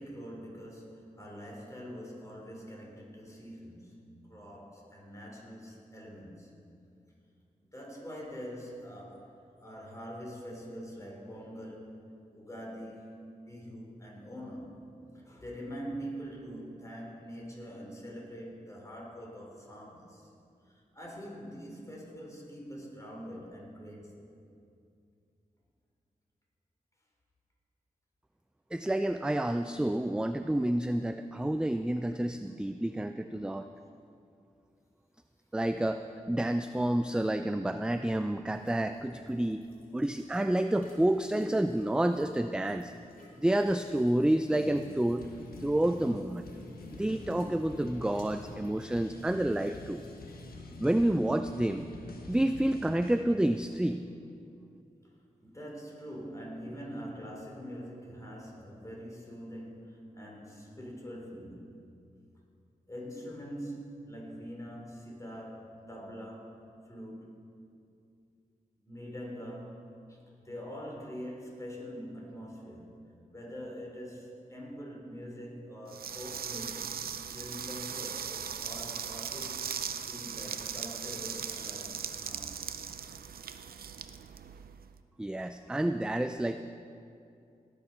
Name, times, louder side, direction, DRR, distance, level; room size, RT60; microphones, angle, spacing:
voice 1, 0.0-6.5 7.6-14.8 15.1-20.3 20.6-24.3 55.4-61.7 62.9-67.5 68.8-73.0 73.3-79.7 80.0-82.6 83.3-84.0, equal, 20° left, -2 dB, 3.7 m, -44 dB
voice 2, 28.7-33.7 35.5-39.6 39.9-42.9 43.4-45.3 45.6-46.5 46.9-50.0 50.8-51.9 52.3-54.0 85.2-86.6, right 1 dB, 5° right, 9 dB, 0.4 m, -29 dB
sound 1, 38.0-53.0, left 1 dB, 65° left, 3.0 m, -54 dB
sound 2, 44.5-53.2, left 2 dB, 85° left, 1.3 m, -46 dB
sound 3, 75.9-84.9, right 7 dB, 85° right, 0.5 m, -39 dB
18.5 x 7.1 x 5.8 m, 2.5 s
cardioid pair, 50°, 15 cm